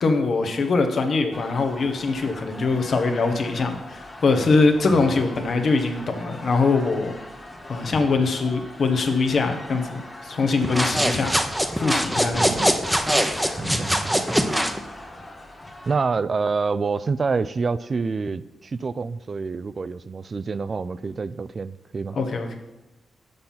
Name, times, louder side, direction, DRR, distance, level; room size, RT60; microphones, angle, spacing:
voice 1, 0.0-7.2 7.7-11.3 11.7-12.5 13.6-13.9 22.1-22.6, left 3 dB, 60° left, 5 dB, 1.1 m, -22 dB
sound 1, 1.3-16.0, left 1 dB, 25° left, 1.6 m, -42 dB
sound 2, 10.6-14.8, equal, 5° right, 0.8 m, -23 dB
voice 2, 12.4-12.8 13.6-14.3 15.9-22.2, right 4 dB, 45° right, 16 dB, 0.3 m, -27 dB
6.8 x 5.7 x 5.7 m, 1.0 s
cardioid pair, 75°, 0 cm